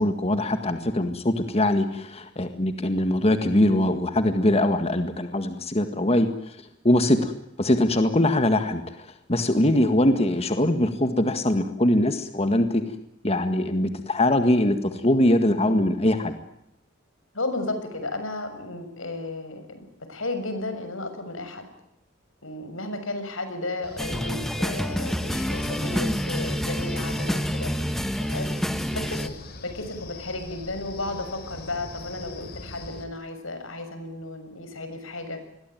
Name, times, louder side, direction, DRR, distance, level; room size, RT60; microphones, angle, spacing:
voice 1, 0.0-6.6 6.8-7.3 7.6-12.8 13.2-16.3, left 1 dB, 30° left, 8 dB, 1.8 m, -22 dB
voice 2, 17.3-21.6 22.4-29.3 29.6-35.4, left 2 dB, 90° left, 8 dB, 6.5 m, -34 dB
Wind, 23.8-33.0, left 2 dB, 50° left, 4.1 m, -41 dB
sound 1, 24.0-29.3, equal, ahead, 1.2 m, -28 dB
27.5 x 22.0 x 9.2 m, 0.82 s
head